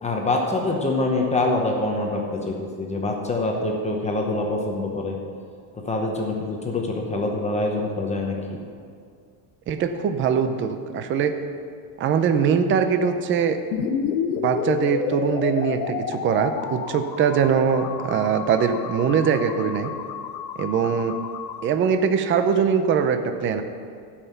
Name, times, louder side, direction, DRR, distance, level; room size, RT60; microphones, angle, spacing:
voice 1, 0.0-5.2 5.7-8.6, left 2 dB, 15° left, 0 dB, 1.0 m, -25 dB
voice 2, 9.7-11.4 12.0-13.6 14.4-19.9 20.6-21.1 21.6-23.6, right 7 dB, 30° right, 8 dB, 0.6 m, -22 dB
sound 1, 13.7-21.6, left 7 dB, 90° left, 1.0 m, -30 dB
14.0 x 5.8 x 6.7 m, 2.2 s
cardioid pair, 155°, 42 cm